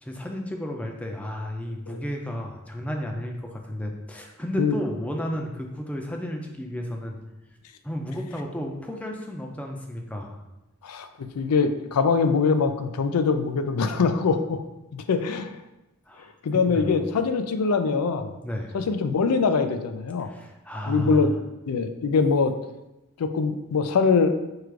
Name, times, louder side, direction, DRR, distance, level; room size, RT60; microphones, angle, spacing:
voice 1, 0.0-7.2 7.8-10.4 16.1-17.0 18.4-18.7 20.2-21.4, equal, 5° left, 1 dB, 0.5 m, -33 dB
voice 2, 10.8-14.6 14.9-15.6 16.4-18.3 18.7-20.3 20.9-21.3 21.7-22.6 23.2-24.3, left 5 dB, 90° left, 9 dB, 0.4 m, -23 dB
4.8 x 2.5 x 4.5 m, 0.98 s
head